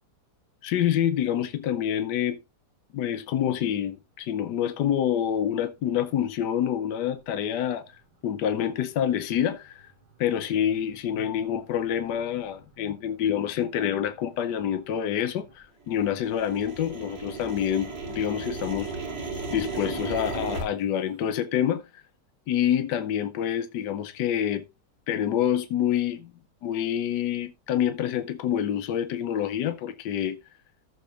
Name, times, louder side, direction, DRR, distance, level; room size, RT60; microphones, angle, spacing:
voice 1, 0.6-2.4 2.9-7.8 8.2-9.9 10.2-18.9 19.5-22.0 22.5-24.7 25.1-26.3 26.6-30.4, left 10 dB, 75° left, 1.4 m, -27 dB
sound 1, 9.8-9.9 10.5-10.6 11.2-11.5 12.0-12.1 12.4-12.9 13.2-15.5 15.8-20.6, right 3 dB, 85° right, 2.9 m, -36 dB
16.0 x 6.6 x 2.5 m
omnidirectional pair, 1.9 m